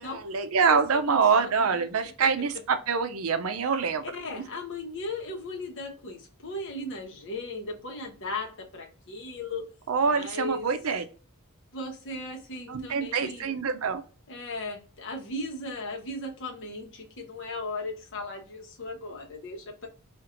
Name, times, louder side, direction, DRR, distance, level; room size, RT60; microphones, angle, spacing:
voice 1, 0.0-4.0 9.9-11.0 12.7-14.0, right 5 dB, 75° right, 9 dB, 0.5 m, -25 dB
voice 2, 1.1-1.8 4.1-9.6 10.1-10.7 11.7-13.5 14.3-19.9, left 2 dB, 60° left, 1 dB, 1.0 m, -37 dB
4.3 x 2.5 x 2.5 m, 0.38 s
head